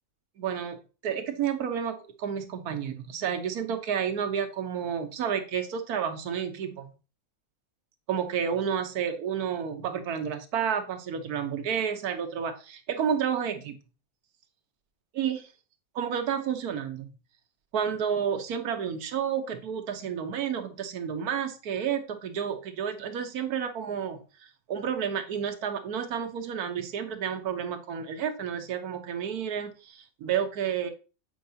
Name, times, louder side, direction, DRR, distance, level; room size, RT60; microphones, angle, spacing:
voice 1, 0.4-0.8 1.0-6.9 8.1-13.8 15.1-15.5 15.9-17.1 17.7-30.9, right 8 dB, 90° right, 7 dB, 1.4 m, -30 dB
7.8 x 4.7 x 2.7 m, 0.33 s
omnidirectional pair, 1.5 m